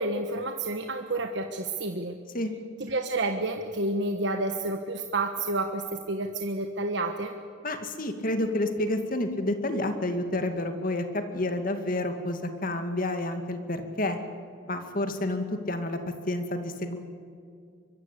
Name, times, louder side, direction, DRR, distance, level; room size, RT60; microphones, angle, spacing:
voice 1, 0.0-2.2 2.8-7.3, right 2 dB, 65° right, 5 dB, 1.4 m, -30 dB
voice 2, 7.6-14.2 14.7-16.0 16.3-17.0, left 1 dB, 45° left, 7 dB, 2.3 m, -29 dB
24.5 x 23.0 x 8.6 m, 2.3 s
head